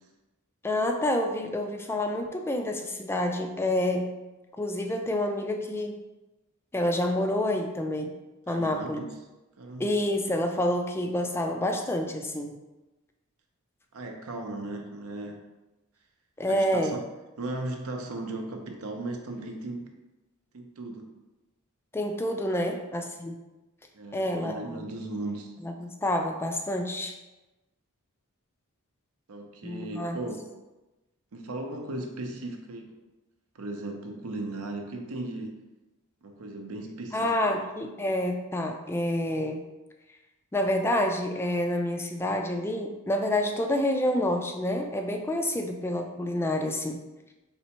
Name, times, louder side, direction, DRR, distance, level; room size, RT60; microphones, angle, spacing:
voice 1, 0.6-4.1 4.6-6.0 6.7-8.2 8.5-9.0 9.8-12.6 16.4-17.0 21.9-23.4 24.1-24.8 25.6-27.1 29.6-30.2 37.1-39.6 40.5-47.0, left 1 dB, 10° left, 3 dB, 0.3 m, -28 dB
voice 2, 8.5-9.1 9.6-9.9 13.9-15.4 16.5-17.0 17.4-19.9 20.5-21.1 22.6-22.7 23.9-25.5 29.3-30.5 31.3-33.0 33.5-35.6 36.2-37.6, right 2 dB, 70° right, 3 dB, 0.6 m, -37 dB
4.2 x 3.3 x 2.9 m, 1.1 s
head